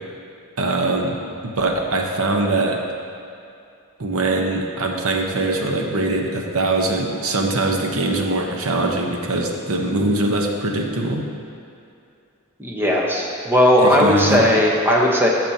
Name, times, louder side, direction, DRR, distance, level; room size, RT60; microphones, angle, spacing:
voice 1, 0.6-1.2 1.4-2.8 4.0-11.3 13.8-14.5, right 2 dB, 70° right, 2 dB, 0.9 m, -22 dB
voice 2, 12.6-15.3, equal, 10° right, -2 dB, 1.0 m, -17 dB
14.5 x 6.1 x 2.8 m, 2.5 s
head